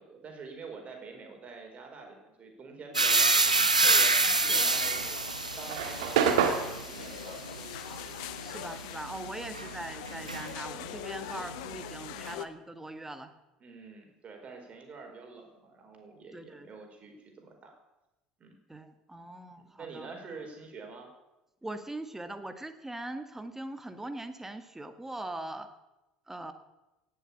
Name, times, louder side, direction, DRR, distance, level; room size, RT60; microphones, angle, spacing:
voice 1, 0.0-7.7 8.3-8.4 9.2-9.4 13.6-17.7 18.4-18.5 19.8-21.1, right 4 dB, 35° right, 3 dB, 4.6 m, -47 dB
sound 1, 2.9-10.9 11.2-12.3, right 3 dB, 90° right, 0.9 m, -28 dB
sound 2, 3.9-12.5, left 14 dB, 60° left, 0.8 m, -43 dB
sound 3, 4.7-9.4 9.7-11.7, right 7 dB, 65° right, 1.8 m, -31 dB
voice 2, 8.4-13.3 16.3-16.7 18.7-20.1 21.6-25.7 26.3-26.5, right 2 dB, 10° right, 9 dB, 1.6 m, -41 dB
17.5 x 7.4 x 8.5 m, 0.99 s
figure-of-eight pair, 65°, 4 cm